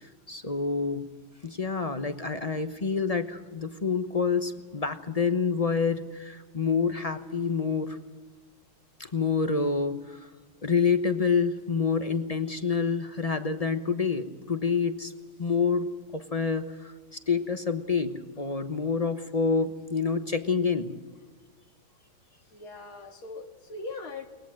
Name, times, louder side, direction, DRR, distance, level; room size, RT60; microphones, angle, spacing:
voice 1, 0.0-1.1 1.4-8.0 9.0-10.3 10.6-15.1 15.4-16.9 17.3-20.9, left 5 dB, 30° left, 9 dB, 0.7 m, -27 dB
voice 2, 22.5-24.3, left 3 dB, 75° left, 4 dB, 3.0 m, -40 dB
22.5 x 20.0 x 7.7 m, 1.4 s
omnidirectional pair, 2.3 m